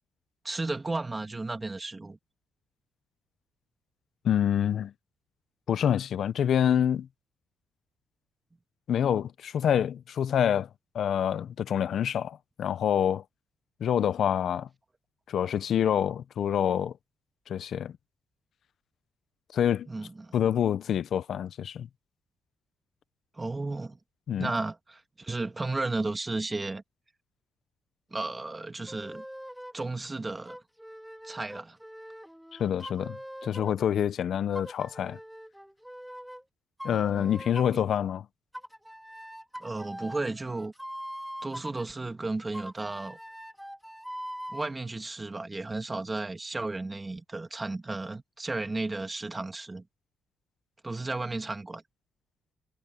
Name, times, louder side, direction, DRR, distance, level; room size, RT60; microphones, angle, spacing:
voice 1, 0.4-2.2 19.9-20.4 23.3-24.0 24.4-26.8 28.1-29.2 29.7-30.6 31.2-31.8 36.9-37.4 37.7-37.8 39.6-40.7 41.4-43.2 44.5-49.8 50.8-51.8, right 2 dB, 20° right, 2.5 m, -34 dB
voice 2, 4.2-4.9 5.7-7.1 8.9-10.7 10.9-13.2 13.8-14.7 15.3-16.9 17.5-17.9 19.5-19.9 20.3-21.9 24.3-24.5 32.5-35.2 36.8-38.3, left 9 dB, 65° left, 1.0 m, -27 dB
sound 1, 28.9-29.9 30.5-33.9 34.5-36.4 36.8-37.9 38.5-41.9 42.5-44.7, equal, ahead, 2.1 m, -42 dB
cardioid pair, 90°, 0 cm